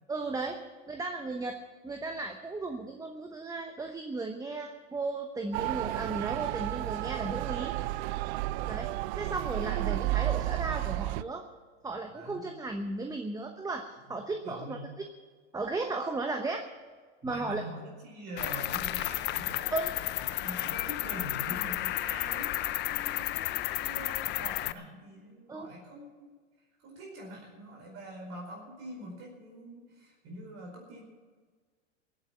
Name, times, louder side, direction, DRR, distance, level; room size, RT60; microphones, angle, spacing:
voice 1, 0.1-0.6 0.9-1.6 1.8-7.7 8.7-8.9 9.2-11.5 11.8-14.8 15.5-16.6 17.2-17.6 19.7-19.9 25.5-25.7, right 3 dB, 10° right, 5 dB, 1.0 m, -35 dB
Motor vehicle (road) / Siren, 5.5-11.2, right 16 dB, 60° right, 0.6 m, -32 dB
voice 2, 8.4-8.9 12.1-12.4 14.4-14.9 17.2-19.7 20.1-22.5 22.8-26.3 26.8-31.0, equal, 40° right, -1 dB, 5.0 m, -44 dB
Cricket, 18.4-24.7, left 15 dB, 30° left, 0.5 m, -32 dB
16.0 x 9.0 x 7.6 m, 1.5 s
hypercardioid pair, 120°, 37 cm